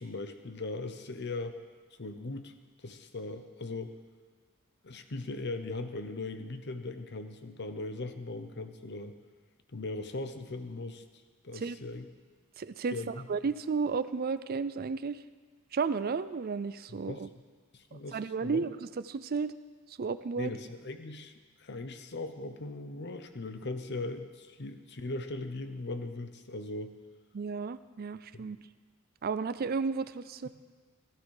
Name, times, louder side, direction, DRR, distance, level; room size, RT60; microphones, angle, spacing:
voice 1, 0.0-1.6 2.0-2.5 2.8-3.9 4.8-9.2 9.7-11.0 11.4-12.1 12.9-13.3 16.9-17.3 17.7-18.7 20.4-21.3 21.6-27.0 28.3-28.5, left 2 dB, 55° left, 8 dB, 1.0 m, -39 dB
voice 2, 12.6-15.2 15.7-17.3 18.1-18.8 19.1-19.5 20.0-20.5 27.3-28.6 29.2-30.5, right 5 dB, 45° right, 13 dB, 0.4 m, -33 dB
16.5 x 12.5 x 4.9 m, 1.5 s
head